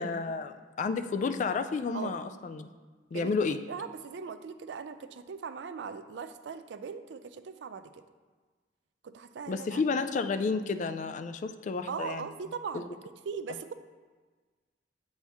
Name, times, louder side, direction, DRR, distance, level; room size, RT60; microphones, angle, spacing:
voice 1, 0.0-2.7 3.1-3.6 9.5-12.2 12.7-12.9, left 4 dB, 45° left, 9 dB, 0.3 m, -31 dB
voice 2, 3.7-8.0 9.0-9.8 11.9-13.0 13.3-13.7, right 6 dB, 85° right, 11 dB, 0.4 m, -39 dB
8.0 x 4.3 x 3.5 m, 1.4 s
head